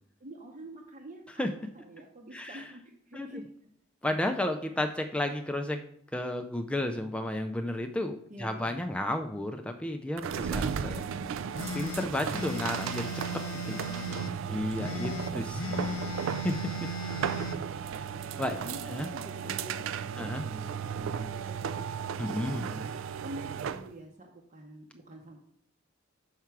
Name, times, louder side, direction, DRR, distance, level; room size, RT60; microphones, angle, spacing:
voice 1, 0.2-3.4 8.3-8.8 13.7-15.2 15.5-16.1 18.2-18.4 18.6-22.0 22.4-22.9 23.2-25.4, right 1 dB, 40° right, -1 dB, 0.8 m, -48 dB
voice 2, 2.3-2.6 3.1-3.3 4.0-5.8 6.1-11.1 11.7-13.1 13.5-13.8 14.5-16.0 16.4-16.5 16.8-16.9 18.4-18.6 18.9-19.1 20.2-20.5 22.2-22.7, left 1 dB, 5° left, 5 dB, 0.3 m, -32 dB
sound 1, 10.2-23.9, right 7 dB, 75° right, 0.3 m, -35 dB
sound 2, 11.5-14.3 14.8-17.6, left 2 dB, 85° left, 0.6 m, -37 dB
5.9 x 5.7 x 4.6 m, 0.67 s
head